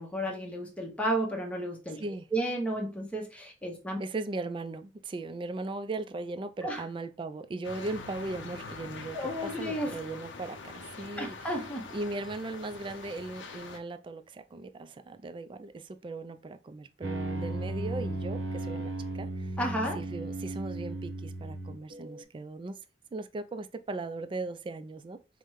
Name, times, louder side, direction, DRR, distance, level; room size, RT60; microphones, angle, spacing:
voice 1, 0.0-4.0 6.6-6.8 9.1-10.0 11.2-11.9 19.6-20.0, right 1 dB, 5° left, 0.8 m, -33 dB
voice 2, 4.0-11.4 11.9-19.5 19.9-22.8 23.1-25.2, right 2 dB, 25° right, 0.3 m, -38 dB
sound 1, 7.6-13.8, left 4 dB, 80° left, 0.6 m, -44 dB
sound 2, 17.0-22.2, right 2 dB, 75° right, 0.7 m, -35 dB
5.0 x 2.1 x 3.1 m
head